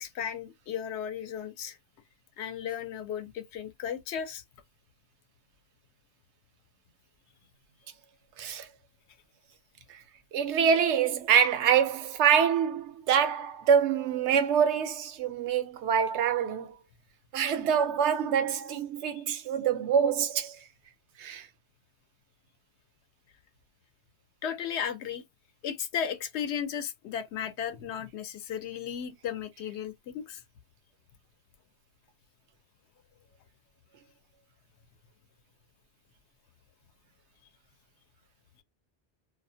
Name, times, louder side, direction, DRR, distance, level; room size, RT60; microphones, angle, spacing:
voice 1, 0.0-1.8 2.4-4.4 24.4-25.2 25.6-30.4, left 8 dB, 75° left, 0.9 m, -35 dB
voice 2, 8.4-8.7 9.9-10.0 10.3-16.8 17.3-20.6 21.2-21.5, right 7 dB, 85° right, 0.9 m, -25 dB
2.4 x 2.1 x 2.6 m
omnidirectional pair, 1.1 m